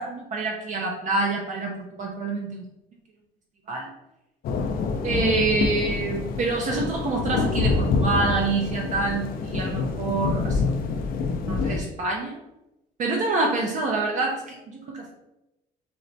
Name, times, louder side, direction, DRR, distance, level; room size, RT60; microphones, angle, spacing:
voice 1, 0.0-2.6 3.7-3.9 5.0-10.6 11.4-12.4 13.0-15.1, right 3 dB, 45° right, 0 dB, 0.5 m, -26 dB
sound 1, 4.4-11.8, left 4 dB, 60° left, 0.4 m, -26 dB
4.1 x 2.1 x 2.7 m, 0.92 s
cardioid pair, 110°, 17 cm